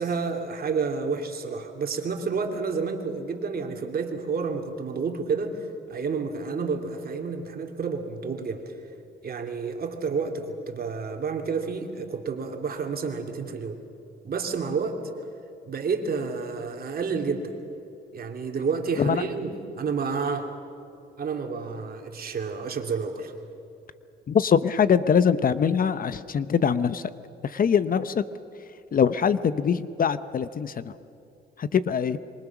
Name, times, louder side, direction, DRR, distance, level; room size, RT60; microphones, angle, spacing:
voice 1, 0.0-5.6 5.9-8.7 9.2-13.8 14.2-15.0 15.6-17.5 18.1-20.5 21.2-23.3, right 5 dB, 50° right, 4 dB, 3.0 m, -30 dB
voice 2, 24.3-27.0 27.4-28.2 28.9-30.9 31.6-32.2, left 7 dB, 45° left, 14 dB, 0.8 m, -23 dB
26.5 x 24.0 x 6.1 m, 2.8 s
cardioid pair, 90°, 20 cm